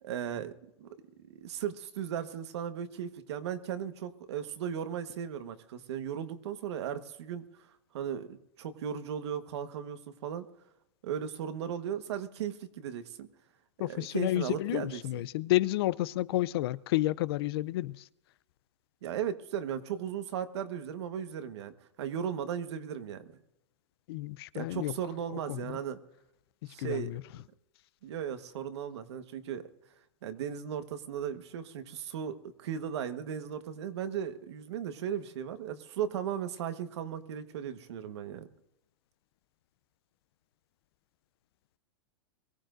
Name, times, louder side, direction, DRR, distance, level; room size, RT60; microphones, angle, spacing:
voice 1, 0.0-0.5 0.8-0.9 1.3-7.7 7.9-10.5 11.0-13.3 13.8-15.2 19.0-21.7 22.0-23.4 24.5-26.0 26.7-27.2 28.0-29.7 30.2-38.5, right 8 dB, 70° right, 1.4 m, -36 dB
voice 2, 13.8-18.1 24.1-24.9 25.3-25.8 26.6-27.2, left 16 dB, 60° left, 0.5 m, -31 dB
23.5 x 16.0 x 2.6 m
hypercardioid pair, 140°, 15 cm